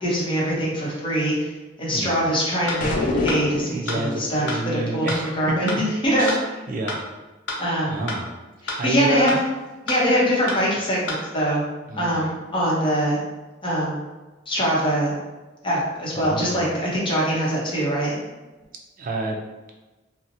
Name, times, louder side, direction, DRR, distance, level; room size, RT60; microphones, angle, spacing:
voice 1, 0.0-1.5 1.8-4.5 4.7-6.5 7.6-8.0 8.6-9.3 9.9-11.7 12.0-13.2 13.6-14.0 14.5-15.1 15.6-18.1, equal, 30° left, -5 dB, 0.8 m, -23 dB
sound 1, 2.7-2.8 3.3-3.4 3.9-4.0 4.5-4.6 5.1-5.2 5.7-5.8 6.3-6.4 6.9-7.0 7.5-7.6 8.1-8.2 8.7-8.8 9.3-9.4 9.9-10.0 10.5-10.6 11.1-11.2, left 2 dB, 90° left, 0.6 m, -28 dB
sound 2, 2.8-3.8, left 2 dB, 50° left, 0.4 m, -24 dB
voice 2, 3.6-5.4 5.6-5.8 6.2-6.4 6.7-7.0 7.9-8.3 8.8-9.4 11.9-12.3 16.1-16.7 19.0-19.4, right 2 dB, 50° right, 1 dB, 0.4 m, -28 dB
2.7 x 2.1 x 2.6 m, 1.1 s
head